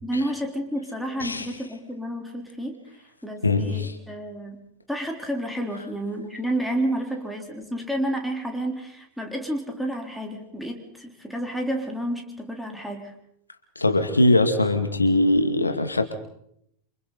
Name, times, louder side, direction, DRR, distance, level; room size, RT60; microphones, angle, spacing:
voice 1, 0.0-4.6 4.9-13.1, right 1 dB, ahead, 2 dB, 3.5 m, -30 dB
voice 2, 3.4-3.9 13.8-16.1, left 2 dB, 80° left, 7 dB, 2.3 m, -21 dB
29.0 x 26.5 x 4.0 m, 0.74 s
figure-of-eight pair, 90°, 0 cm